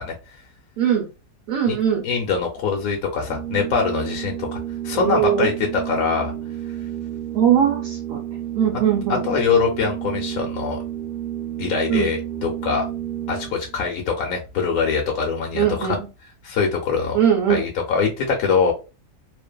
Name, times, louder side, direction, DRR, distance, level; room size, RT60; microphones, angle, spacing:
voice 1, 0.8-1.1 1.5-2.1 4.9-5.5 7.3-8.2 8.6-9.3 11.9-12.1 15.5-16.1 17.1-17.6, right 9 dB, 65° right, 1 dB, 0.9 m, -20 dB
voice 2, 2.0-4.6 4.8-6.3 9.2-10.8 11.6-12.8 13.3-16.0 16.4-17.2 17.5-18.7, left 5 dB, 65° left, 0 dB, 1.0 m, -23 dB
Organ, 3.1-13.8, right 11 dB, 90° right, 0.5 m, -31 dB
2.6 x 2.4 x 2.2 m, 0.29 s
omnidirectional pair, 1.8 m